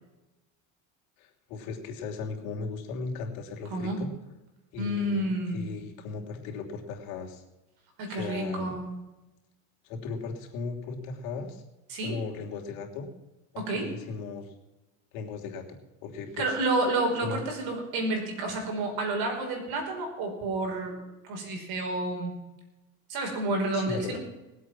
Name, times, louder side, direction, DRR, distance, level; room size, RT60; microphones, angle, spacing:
voice 1, 1.2-4.1 4.7-5.3 5.5-7.4 8.1-8.7 9.8-11.6 12.0-13.1 13.5-14.5 15.1-15.7 16.0-16.5 17.2-17.4 23.7-24.2, left 4 dB, 75° left, 1 dB, 3.2 m, -37 dB
voice 2, 4.8-5.7 8.0-8.9 11.9-12.1 13.6-13.9 16.4-21.0 21.3-22.4 23.1-24.2, right 2 dB, 60° right, 3 dB, 5.5 m, -30 dB
20.0 x 8.1 x 6.1 m, 1.0 s
supercardioid pair, 125°, 43 cm